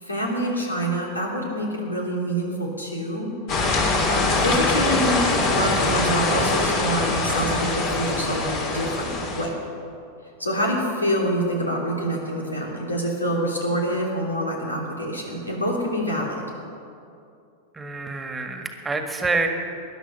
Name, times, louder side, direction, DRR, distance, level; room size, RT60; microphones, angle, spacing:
voice 1, 0.0-3.3 4.3-9.5 10.4-16.4, equal, 90° left, -1 dB, 3.1 m, -26 dB
sound 1, 3.5-9.5, left 2 dB, 45° left, 3.4 m, -23 dB
voice 2, 17.8-19.5, right 3 dB, 15° right, 5 dB, 1.7 m, -27 dB
20.5 x 11.5 x 5.5 m, 2.5 s
figure-of-eight pair, 90°, 0 cm